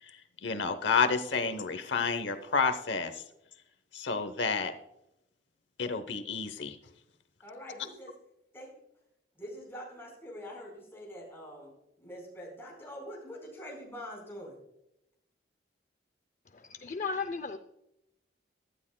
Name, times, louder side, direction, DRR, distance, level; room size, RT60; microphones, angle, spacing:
voice 1, 0.4-3.2 3.9-4.7 5.8-6.8, left 5 dB, 90° left, 10 dB, 0.9 m, -30 dB
voice 2, 7.4-8.1 8.5-8.7 9.4-11.7 12.0-14.6, equal, 15° left, -2 dB, 4.4 m, -44 dB
voice 3, 16.8-17.6, left 4 dB, 45° left, 9 dB, 0.5 m, -34 dB
16.0 x 12.0 x 2.2 m, 0.84 s
head